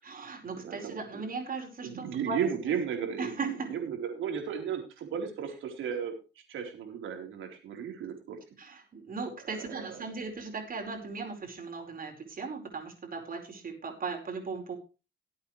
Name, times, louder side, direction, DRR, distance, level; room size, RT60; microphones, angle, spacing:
voice 1, 0.0-2.4 2.7-2.8 3.2-3.7 8.6-14.8, right 4 dB, 45° right, 2 dB, 4.9 m, -37 dB
voice 2, 0.6-1.2 1.8-6.1 6.5-8.4 9.6-10.0, right 7 dB, 80° right, 3 dB, 4.1 m, -35 dB
18.5 x 8.6 x 3.3 m, 0.31 s
cardioid pair, 90°, 20 cm